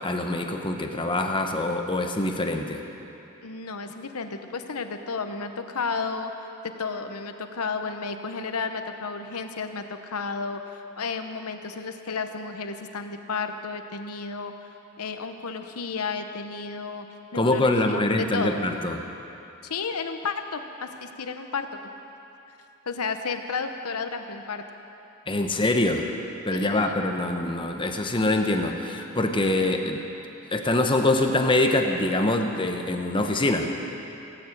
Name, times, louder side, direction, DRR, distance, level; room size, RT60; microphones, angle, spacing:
voice 1, 0.0-2.8 17.4-19.0 25.3-26.1 26.5-30.0 30.5-33.7, left 2 dB, 20° left, 4 dB, 0.9 m, -24 dB
voice 2, 3.4-14.5 15.0-17.1 17.3-18.6 19.6-21.7 22.9-24.6 26.5-27.1, left 4 dB, 85° left, 7 dB, 0.9 m, -32 dB
17.5 x 8.7 x 8.0 m, 2.9 s
head